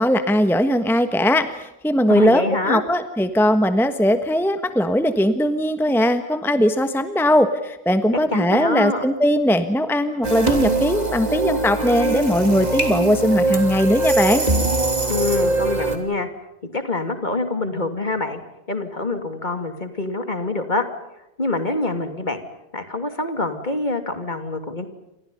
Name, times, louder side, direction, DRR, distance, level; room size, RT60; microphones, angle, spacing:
voice 1, 0.0-14.4, equal, ahead, 9 dB, 1.3 m, -19 dB
voice 2, 2.1-2.8 8.3-9.0 15.1-16.3 16.7-18.4 18.7-20.8 21.4-22.4 22.7-24.9, left 2 dB, 40° left, 7 dB, 2.9 m, -25 dB
sound 1, 10.2-16.0, right 2 dB, 35° right, 3.4 m, -22 dB
29.5 x 27.0 x 5.5 m, 0.90 s
omnidirectional pair, 1.2 m